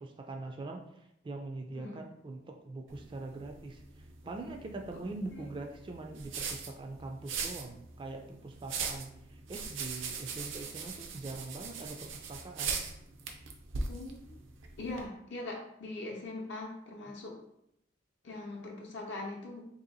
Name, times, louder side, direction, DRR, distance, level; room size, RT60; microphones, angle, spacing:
voice 1, 0.0-12.8, right 2 dB, 25° right, 3 dB, 0.3 m, -43 dB
sound 1, 2.9-15.0, right 5 dB, 80° right, 0.5 m, -41 dB
voice 2, 13.9-14.4 14.8-17.4 18.2-19.6, left 2 dB, 65° left, 0 dB, 0.6 m, -41 dB
2.8 x 2.7 x 3.9 m, 0.76 s
head